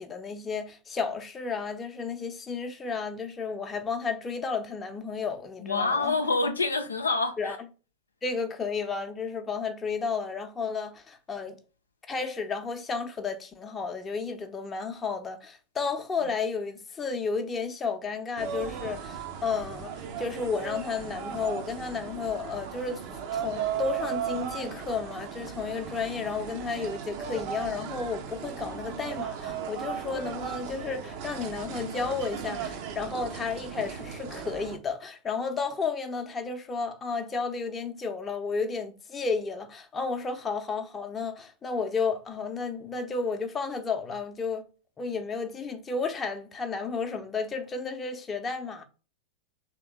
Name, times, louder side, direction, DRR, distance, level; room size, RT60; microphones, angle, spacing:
voice 1, 0.0-6.1 7.4-7.6 8.2-11.6 12.1-23.0 23.3-44.6 45.0-48.8, left 4 dB, 20° left, 0.7 m, -32 dB
voice 2, 5.6-7.6, left 3 dB, 75° left, 0.5 m, -27 dB
sound 1, 18.4-34.8, right 7 dB, 45° right, 0.7 m, -36 dB
3.4 x 2.9 x 4.7 m
figure-of-eight pair, 90°, 0 cm